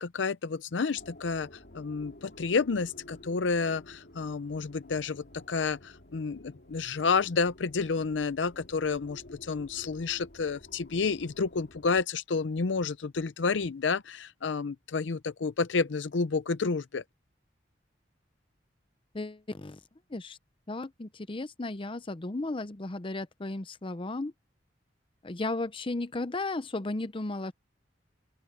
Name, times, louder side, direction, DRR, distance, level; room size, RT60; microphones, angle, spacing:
voice 1, 0.0-1.5 1.7-17.0, left 4 dB, 80° left, 0.6 m, -30 dB
sound 1, 1.0-12.0, left 1 dB, 65° left, 2.5 m, -52 dB
voice 2, 19.1-19.8 20.1-20.4 20.7-24.3 25.2-27.5, left 2 dB, 30° left, 0.7 m, -34 dB
open air
head